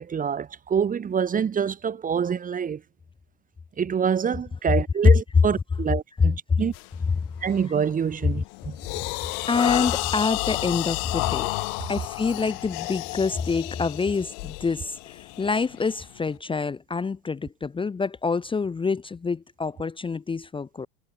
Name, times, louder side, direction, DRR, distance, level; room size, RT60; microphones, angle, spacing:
voice 1, 0.0-2.8 3.8-6.7 7.4-8.7, right 7 dB, 20° right, 1.4 m, -26 dB
sound 1, 6.7-7.0 7.5-7.8 8.2-16.3, left 40 dB or more, 65° left, 3.3 m, -31 dB
voice 2, 9.5-11.5 11.9-20.9, left 4 dB, 15° left, 1.1 m, -27 dB
supercardioid pair, 135°, 38 cm